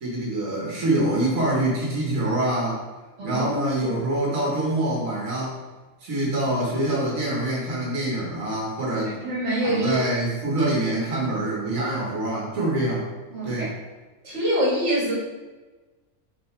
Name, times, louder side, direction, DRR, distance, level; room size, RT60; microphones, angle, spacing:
voice 1, 0.0-2.8 3.2-5.6 6.0-9.1 9.6-13.1 13.4-13.7, right 1 dB, 85° right, -5 dB, 1.8 m, -25 dB
voice 2, 8.9-10.0 13.3-13.7 14.2-15.1, right 1 dB, 60° right, -5 dB, 2.1 m, -25 dB
5.7 x 5.5 x 3.3 m, 1.2 s
omnidirectional pair, 1.4 m